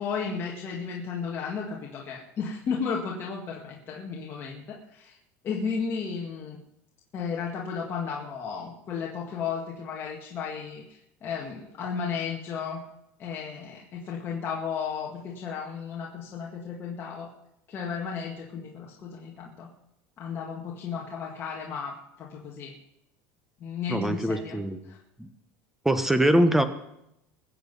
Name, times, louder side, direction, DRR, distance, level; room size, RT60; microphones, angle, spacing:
voice 1, 0.0-5.2 5.4-6.6 7.1-12.9 13.2-17.3 17.7-19.7 20.2-22.8 23.6-24.6 24.9-25.0, left 6 dB, 35° left, -2 dB, 2.0 m, -34 dB
voice 2, 23.9-24.8 25.2-25.3 25.8-26.7, right 1 dB, 5° right, 10 dB, 1.0 m, -23 dB
21.5 x 8.0 x 5.4 m, 0.82 s
supercardioid pair, 135°, 7 cm